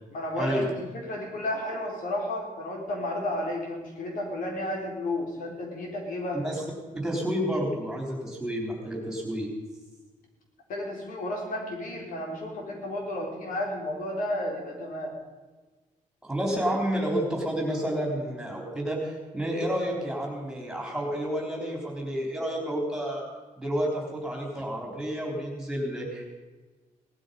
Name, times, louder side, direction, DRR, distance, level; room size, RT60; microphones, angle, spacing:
voice 1, 0.1-6.4 10.7-15.2, left 1 dB, 80° left, 0 dB, 4.1 m, -32 dB
voice 2, 6.9-9.5 16.2-23.2 23.6-26.3, equal, 5° right, -1 dB, 3.9 m, -30 dB
18.0 x 12.5 x 5.4 m, 1.3 s
wide cardioid pair, 150°, 14 cm